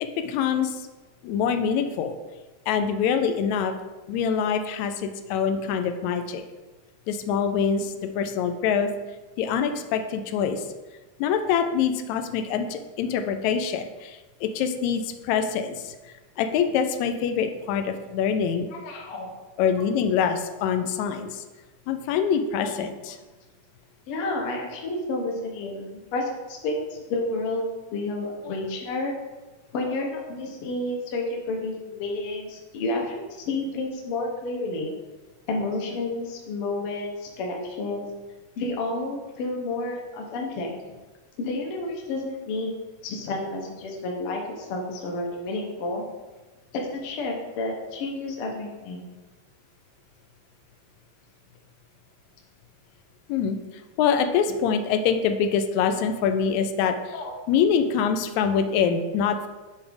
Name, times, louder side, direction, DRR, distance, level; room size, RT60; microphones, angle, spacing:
voice 1, 0.2-0.9 1.2-2.2 2.7-3.7 4.1-6.4 7.1-8.9 9.4-10.6 11.2-16.0 16.4-18.7 19.6-21.4 21.9-23.2 53.3-53.6 54.0-57.1 57.5-59.5, left 7 dB, 80° left, 7 dB, 1.8 m, -25 dB
voice 2, 18.7-19.3 22.6-22.7 24.1-25.8 26.1-29.1 29.7-34.9 35.5-38.0 38.6-40.7 41.4-42.7 43.0-46.0 46.7-49.0 57.1-57.3, left 2 dB, 60° left, 0 dB, 1.6 m, -30 dB
9.1 x 3.5 x 5.2 m, 1.2 s
omnidirectional pair, 3.6 m